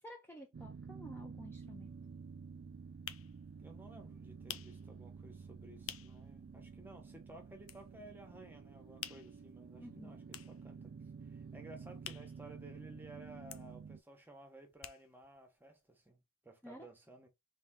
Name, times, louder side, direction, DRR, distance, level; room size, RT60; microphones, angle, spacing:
voice 1, 0.0-1.9 9.8-10.2 16.6-16.9, equal, 10° left, 0.8 m, -52 dB
sound 1, 0.5-14.0, right 5 dB, 45° right, 0.3 m, -51 dB
sound 2, 1.7-6.3 6.6-6.7 7.0-8.2 8.5-13.0 13.3-15.4 15.7-15.8 16.0-16.1, left 12 dB, 60° left, 0.5 m, -50 dB
voice 2, 3.6-10.9 11.3-17.3, right 1 dB, 10° right, 1.2 m, -56 dB
3.6 x 3.6 x 3.7 m
head